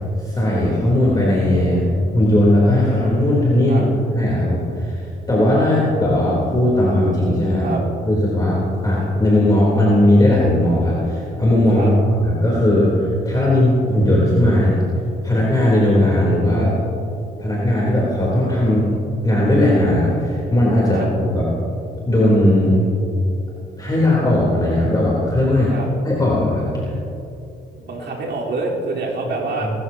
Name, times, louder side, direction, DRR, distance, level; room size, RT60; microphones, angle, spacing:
voice 1, 0.2-1.8 2.1-3.9 4.1-7.7 8.0-11.9 12.2-14.8 15.2-16.7 17.4-18.9 19.2-21.0 21.3-21.4 22.1-22.8 23.8-25.7 26.0-26.9, left 1 dB, 20° left, -6 dB, 3.7 m, -17 dB
voice 2, 27.8-29.7, right 3 dB, 60° right, -4 dB, 4.2 m, -26 dB
25.5 x 13.5 x 3.0 m, 2.7 s
cardioid pair, 90°, 20 cm